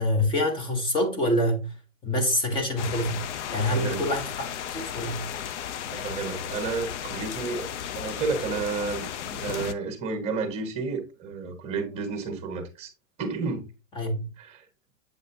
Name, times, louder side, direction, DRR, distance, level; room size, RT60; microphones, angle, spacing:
voice 1, 0.0-1.7 2.0-3.2 3.5-5.2 14.0-14.2, left 1 dB, 10° left, 0.9 m, -26 dB
sound 1, 2.8-9.7, left 9 dB, 60° left, 0.7 m, -34 dB
voice 2, 3.6-4.0 5.9-7.7 7.9-12.9 13.2-13.7 14.4-14.6, right 4 dB, 15° right, 1.4 m, -31 dB
8.0 x 5.3 x 2.7 m
supercardioid pair, 160°, 40 cm